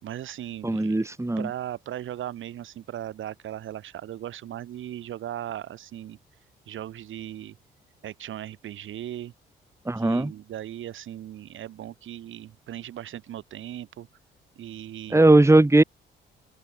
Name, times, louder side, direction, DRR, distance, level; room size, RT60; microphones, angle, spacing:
voice 1, 0.0-1.1 1.4-6.2 6.7-7.6 8.0-9.3 10.0-14.1 14.5-15.2, right 11 dB, 75° right, 6.6 m, -37 dB
voice 2, 0.6-1.5 9.9-10.3 15.1-15.8, right 2 dB, 15° right, 2.1 m, -18 dB
open air
supercardioid pair, 60°, 21 cm